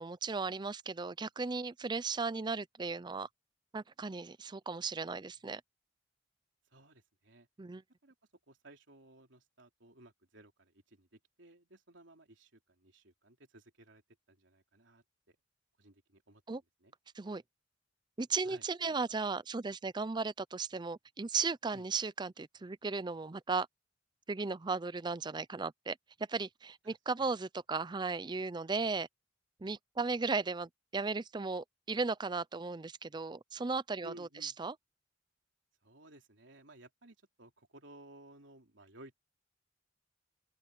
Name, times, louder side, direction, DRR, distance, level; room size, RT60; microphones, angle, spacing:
voice 1, 0.0-3.3 3.7-5.6 7.6-7.8 16.5-16.6 17.2-17.4 18.2-23.7 24.3-26.0 26.3-29.1 29.6-34.7, right 4 dB, 25° right, 0.5 m, -36 dB
voice 2, 6.7-7.5 8.0-8.1 8.5-14.0 14.3-15.4 15.8-16.4 16.8-16.9 18.4-19.2 21.7-21.9 26.8-27.0 34.0-34.6 35.8-39.2, right 1 dB, 85° right, 3.4 m, -57 dB
open air
head